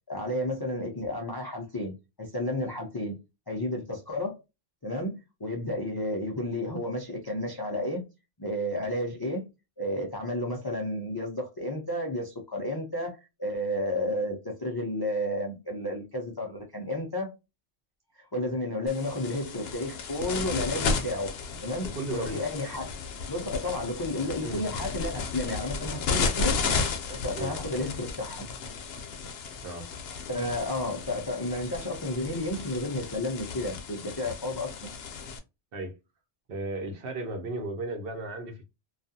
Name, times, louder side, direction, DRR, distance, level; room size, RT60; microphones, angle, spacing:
voice 1, 0.1-3.2 3.5-4.4 4.8-8.0 8.4-9.4 9.8-17.3 18.2-21.3 21.6-22.9 23.3-26.6 27.1-28.5 30.3-34.9, left 1 dB, 40° left, 0.3 m, -32 dB
sound 1, 18.9-35.4, left 5 dB, 70° left, 0.8 m, -34 dB
voice 2, 21.9-22.4 24.4-24.7 27.3-27.5 29.6-29.9 35.7-36.0 36.5-38.6, right 2 dB, 60° right, 0.9 m, -35 dB
2.4 x 2.3 x 2.6 m
omnidirectional pair, 1.1 m